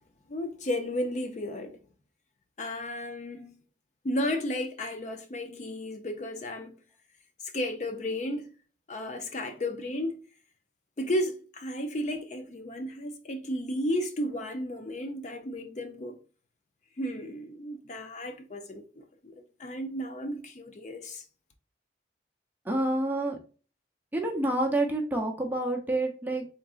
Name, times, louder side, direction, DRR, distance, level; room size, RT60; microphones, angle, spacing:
voice 1, 0.3-1.8 2.6-3.5 4.0-6.8 7.4-8.5 8.9-10.1 11.0-16.2 17.0-21.3, left 1 dB, 40° left, 0.5 m, -33 dB
voice 2, 22.7-23.4 24.1-26.5, right 1 dB, 10° right, 0.7 m, -28 dB
3.8 x 3.6 x 2.4 m
head